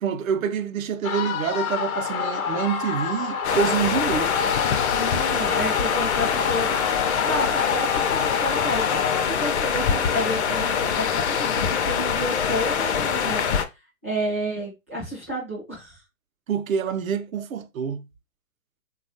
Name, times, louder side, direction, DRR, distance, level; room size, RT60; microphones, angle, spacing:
voice 1, 0.0-4.3 16.5-18.0, right 7 dB, 75° right, 0.6 m, -26 dB
sound 1, 1.0-9.2, left 6 dB, 80° left, 0.8 m, -28 dB
sound 2, 3.4-13.6, left 7 dB, 55° left, 0.5 m, -24 dB
voice 2, 4.9-6.7 7.0-13.4 13.7-16.0, equal, 10° right, 0.4 m, -31 dB
3.1 x 2.3 x 2.6 m
hypercardioid pair, 145°, 41 cm